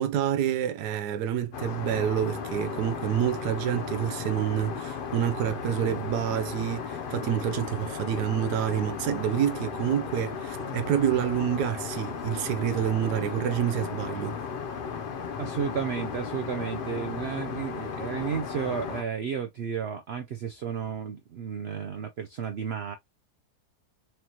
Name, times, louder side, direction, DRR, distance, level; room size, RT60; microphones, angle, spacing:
voice 1, 0.0-14.4, right 10 dB, 90° right, 1.2 m, -28 dB
Aircraft, 1.5-19.0, left 6 dB, 75° left, 0.5 m, -35 dB
voice 2, 15.4-23.0, right 7 dB, 75° right, 0.6 m, -32 dB
4.7 x 2.9 x 2.9 m
omnidirectional pair, 1.7 m